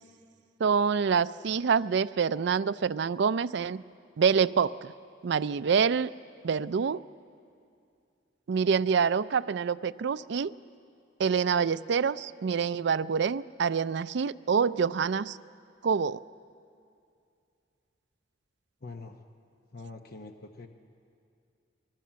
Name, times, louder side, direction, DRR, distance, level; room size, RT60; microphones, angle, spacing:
voice 1, 0.6-3.8 4.2-4.9 5.2-6.1 6.4-7.0 8.5-10.5 11.2-15.4 15.8-16.2, right 6 dB, 65° right, 14 dB, 0.4 m, -26 dB
voice 2, 18.8-19.2 19.7-20.7, left 3 dB, 55° left, 5 dB, 1.0 m, -44 dB
21.5 x 19.5 x 7.5 m, 2.4 s
head